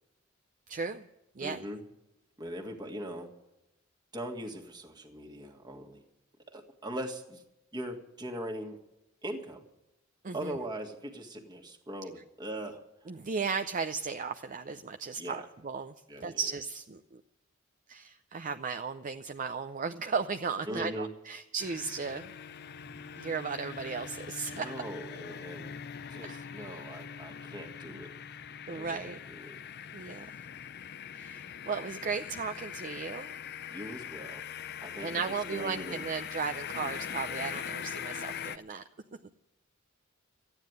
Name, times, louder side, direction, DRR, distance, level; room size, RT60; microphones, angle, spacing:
voice 1, 0.7-1.1 1.4-1.6 10.2-10.5 13.1-17.2 17.9-22.3 23.2-24.7 26.2-26.8 28.7-29.2 29.9-30.3 31.1-33.3 35.0-38.8, right 5 dB, 40° right, 8 dB, 0.5 m, -36 dB
voice 2, 1.4-1.8 2.4-3.3 4.1-6.0 6.5-7.4 7.7-8.8 9.2-9.6 10.3-13.1 15.2-15.5 16.1-16.4 20.7-21.1 24.5-25.8 26.1-28.1 28.7-29.6 33.7-34.4 34.8-36.0, right 1 dB, 20° right, 2 dB, 1.8 m, -40 dB
sound 1, 21.6-38.6, left 8 dB, 50° left, 0.5 m, -42 dB
13.5 x 9.7 x 9.4 m, 0.93 s
head